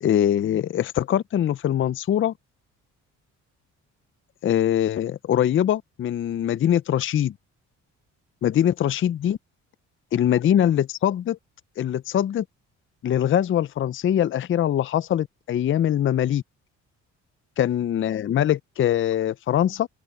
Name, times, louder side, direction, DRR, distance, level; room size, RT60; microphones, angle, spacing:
voice 1, 0.0-2.3 4.4-7.3 8.4-9.4 10.1-11.4 11.8-12.4 13.0-16.4 17.6-19.9, left 10 dB, 40° left, 0.5 m, -22 dB
open air
cardioid pair, 90°, 30 cm